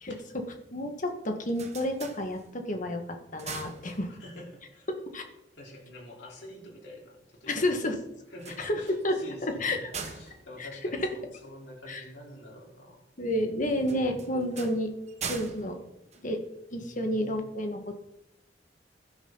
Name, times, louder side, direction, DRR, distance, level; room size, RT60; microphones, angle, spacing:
voice 1, 0.7-4.1 4.9-5.2 7.5-8.0 8.6-9.9 10.6-10.7 11.9-12.0 13.2-14.9 15.3-15.8 16.2-16.4 16.7-18.0, left 1 dB, 45° left, 4 dB, 1.9 m, -30 dB
sound 1, 1.2-2.8 3.2-4.5 8.3-11.7 13.8-16.9, right 5 dB, 40° right, 1.5 m, -43 dB
voice 2, 4.1-4.9 5.5-7.7 8.3-13.0 16.7-17.4, left 1 dB, 90° left, -1 dB, 4.2 m, -47 dB
16.0 x 12.0 x 4.1 m, 0.86 s
head